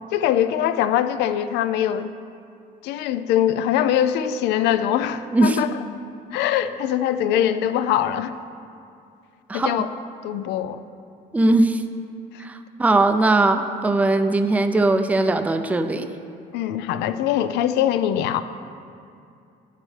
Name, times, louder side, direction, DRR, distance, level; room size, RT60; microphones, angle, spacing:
voice 1, 0.1-2.1 2.8-5.7 6.3-8.4 9.5-9.9 10.2-10.8 16.5-18.4, left 10 dB, 85° left, 12 dB, 0.4 m, -22 dB
voice 2, 9.5-9.8 11.3-11.8 12.4-16.1, right 2 dB, 10° right, 7 dB, 0.4 m, -20 dB
10.5 x 8.8 x 3.3 m, 2.5 s
cardioid pair, 110°, 17 cm